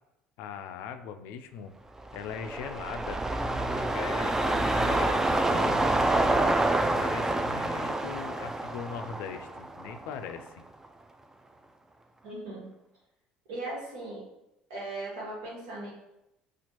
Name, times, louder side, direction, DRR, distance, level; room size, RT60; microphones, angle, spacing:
voice 1, 0.4-1.7 2.1-3.2 3.7-5.9 7.0-10.5, left 7 dB, 75° left, 8 dB, 0.3 m, -40 dB
sound 1, 2.0-10.5 10.8-10.9, right 2 dB, 15° right, 0.3 m, -27 dB
voice 2, 12.2-12.7 13.5-14.2 14.7-15.9, right 2 dB, 85° right, -4 dB, 1.3 m, -38 dB
4.3 x 2.4 x 2.9 m, 0.88 s
supercardioid pair, 75°, 3 cm